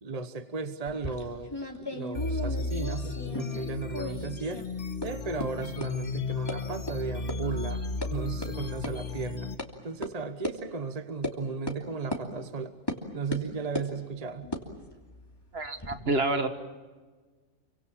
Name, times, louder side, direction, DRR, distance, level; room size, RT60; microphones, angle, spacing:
voice 1, 0.0-4.7 5.0-9.5 9.8-12.7 13.1-14.5, right 4 dB, 35° right, 10 dB, 1.1 m, -35 dB
sound 1, 0.8-3.7 3.9-4.7 5.0-5.1 5.4-5.5 5.8-5.9 6.5-6.6 6.9-7.0 7.3-7.4 7.7-8.1 8.4-8.5 8.8-8.9 9.6-9.7 10.0-10.1 10.4-10.6 11.2-11.4 11.7-11.8 12.1-12.2 12.9-13.0 13.3-13.9 14.4-16.0, left 1 dB, 20° left, 2.8 m, -36 dB
sound 2, 2.1-9.5, left 4 dB, 50° left, 1.6 m, -34 dB
voice 2, 15.5-16.5, right 2 dB, 60° right, 8 dB, 2.0 m, -28 dB
28.0 x 24.5 x 7.4 m, 1.4 s
omnidirectional pair, 1.2 m